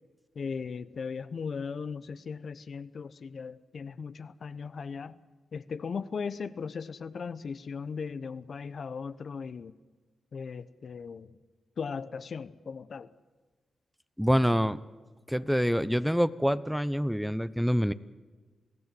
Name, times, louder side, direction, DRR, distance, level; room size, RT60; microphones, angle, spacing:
voice 1, 0.3-5.2 5.5-9.7 10.3-11.4 11.8-13.1, left 5 dB, 60° left, 13 dB, 0.9 m, -38 dB
voice 2, 14.2-14.8 15.3-17.9, equal, ahead, 15 dB, 0.9 m, -26 dB
28.0 x 16.5 x 7.8 m, 1.4 s
supercardioid pair, 45°, 0 cm